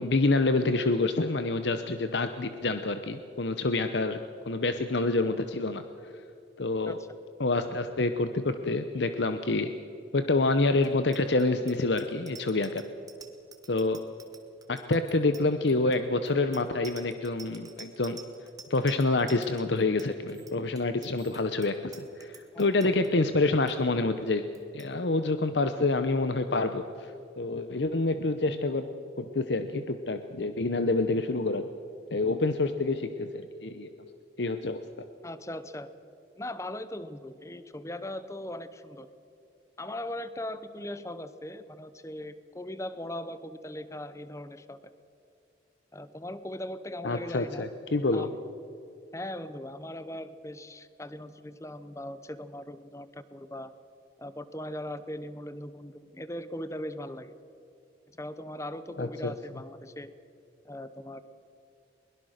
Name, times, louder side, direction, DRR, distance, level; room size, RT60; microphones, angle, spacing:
voice 1, 0.0-4.2 4.5-5.8 6.6-7.0 7.4-9.7 10.1-12.8 13.7-14.0 14.7-18.2 18.7-24.4 24.7-28.9 29.2-31.7 32.1-33.9 34.4-35.1 47.0-48.3 59.0-59.3, left 2 dB, 75° left, 9 dB, 0.9 m, -27 dB
Bicycle bell, 10.8-23.1 23.4-23.7 24.0-24.3 24.5-24.9, right 5 dB, 20° right, 1.6 m, -50 dB
voice 2, 35.2-35.9 36.4-39.1 39.8-44.9 45.9-47.7 48.1-48.3 49.1-53.7 54.2-57.3 58.2-60.1 60.6-61.2, left 1 dB, 15° left, 13 dB, 0.9 m, -39 dB
22.5 x 21.5 x 6.6 m, 2.7 s
head